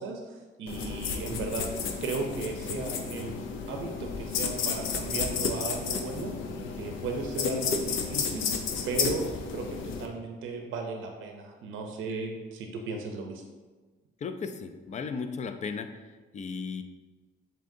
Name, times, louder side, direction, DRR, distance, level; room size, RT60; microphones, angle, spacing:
voice 1, 0.0-6.3 6.8-8.5 8.9-13.4, right 3 dB, 80° right, 3 dB, 0.6 m, -36 dB
sound 1, 0.7-10.1, left 5 dB, 85° left, 0.5 m, -32 dB
voice 2, 14.2-16.1 16.3-16.8, left 5 dB, 35° left, 8 dB, 0.4 m, -35 dB
7.2 x 2.8 x 2.6 m, 1.3 s
cardioid pair, 90°, 20 cm